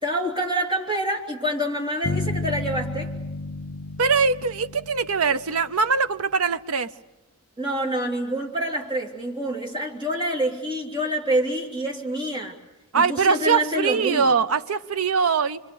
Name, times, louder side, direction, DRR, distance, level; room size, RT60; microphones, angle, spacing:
voice 1, 0.0-3.1 7.6-12.5 12.9-14.3, right 1 dB, 20° right, -1 dB, 3.1 m, -27 dB
sound 1, 2.0-6.0, left 2 dB, 65° left, 0.8 m, -32 dB
voice 2, 4.0-6.9 12.9-15.6, right 5 dB, 80° right, 12 dB, 0.8 m, -22 dB
26.0 x 25.5 x 6.9 m, 1.0 s
head